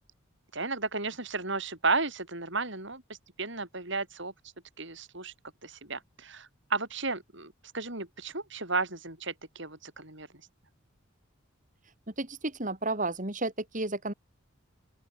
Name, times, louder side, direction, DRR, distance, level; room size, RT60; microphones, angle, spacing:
voice 1, 0.5-3.0 3.4-4.3 4.8-5.3 5.6-10.3, right 3 dB, 60° right, 7.8 m, -33 dB
voice 2, 12.2-14.1, right 2 dB, 35° right, 3.4 m, -32 dB
open air
head